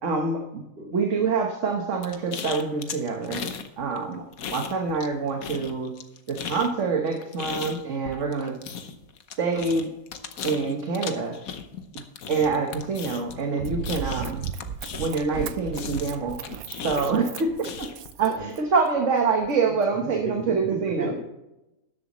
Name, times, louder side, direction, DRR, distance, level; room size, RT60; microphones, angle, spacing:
voice 1, 0.0-0.6 0.9-3.5 3.8-4.2 4.5-5.9 6.3-8.6 9.4-9.9 10.4-11.4 11.9-14.4 15.0-16.4 16.8-17.5 17.8-17.9 18.2-21.1, right 4 dB, 65° right, 3 dB, 1.5 m, -26 dB
sound 1, 2.0-3.7 4.0-5.1 5.4-15.4 15.7-18.1, left 6 dB, 90° left, 1.4 m, -36 dB
Run, 13.6-18.9 19.4-19.5, right 8 dB, 85° right, 1.1 m, -36 dB
voice 2, 20.0-21.2, right 2 dB, 45° right, -2 dB, 3.5 m, -34 dB
13.5 x 11.0 x 3.1 m, 0.93 s
omnidirectional pair, 1.4 m